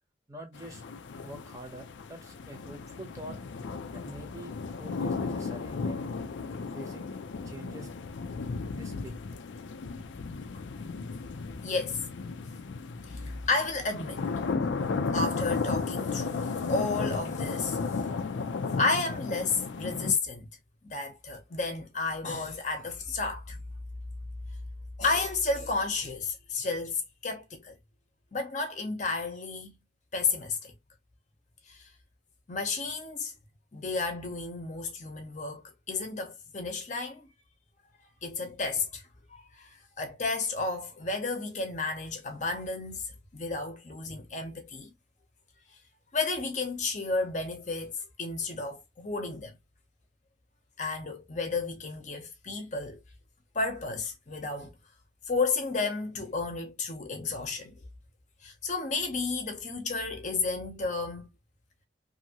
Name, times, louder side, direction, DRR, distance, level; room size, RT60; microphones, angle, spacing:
voice 1, 0.3-0.8 1.2-3.4 3.9-6.1 6.7-7.2 7.5-7.9 8.7-9.2, right 1 dB, 20° right, 0.8 m, -45 dB
sound 1, 0.5-20.1, left 4 dB, 85° left, 0.4 m, -34 dB
voice 2, 11.6-12.1 13.1-14.2 15.1-17.8 18.8-20.5 20.8-23.6 25.0-27.8 28.3-29.8 30.1-30.7 31.7-31.9 32.5-33.3 33.7-37.3 38.2-39.0 39.3-44.9 46.1-49.5 50.8-53.0 53.5-54.8 55.3-57.7 58.4-61.3, left 3 dB, 40° left, 0.8 m, -32 dB
2.7 x 2.6 x 2.8 m
head